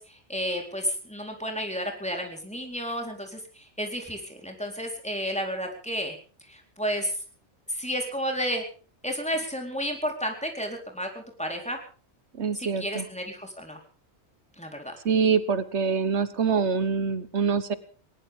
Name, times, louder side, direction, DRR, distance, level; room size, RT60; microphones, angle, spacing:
voice 1, 0.0-6.2 6.5-7.2 7.7-8.6 9.0-11.8 12.6-13.8 14.6-15.0, equal, 5° left, 2 dB, 4.2 m, -32 dB
voice 2, 12.3-13.1 15.0-17.8, right 5 dB, 80° right, 13 dB, 1.5 m, -25 dB
20.0 x 19.5 x 3.7 m, 0.39 s
omnidirectional pair, 1.1 m